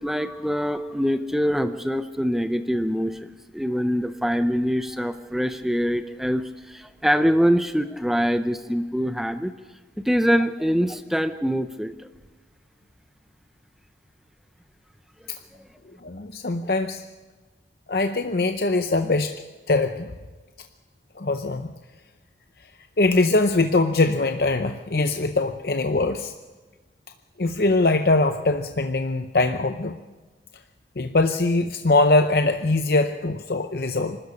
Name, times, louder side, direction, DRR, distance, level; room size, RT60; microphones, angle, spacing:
voice 1, 0.0-3.3 3.5-9.5 10.0-12.1, equal, ahead, 9 dB, 0.6 m, -24 dB
voice 2, 16.0-17.0 17.9-19.4 19.7-20.1 21.2-21.7 23.0-26.3 27.4-30.0 31.0-34.2, left 2 dB, 55° left, 7 dB, 0.7 m, -22 dB
24.5 x 13.0 x 8.4 m, 1.3 s
head